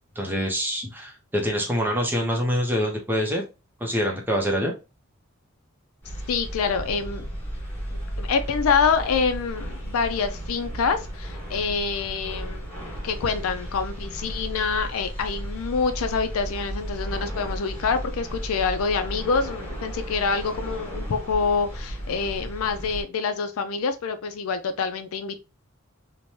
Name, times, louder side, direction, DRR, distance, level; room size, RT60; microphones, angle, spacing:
voice 1, 0.2-3.4 3.8-4.7, equal, 10° right, 0.6 m, -25 dB
sound 1, 6.0-23.0, equal, 10° left, 1.4 m, -34 dB
voice 2, 6.3-7.2 7.9-12.7 13.0-25.4, left 5 dB, 85° left, 0.4 m, -26 dB
3.1 x 2.1 x 2.7 m
head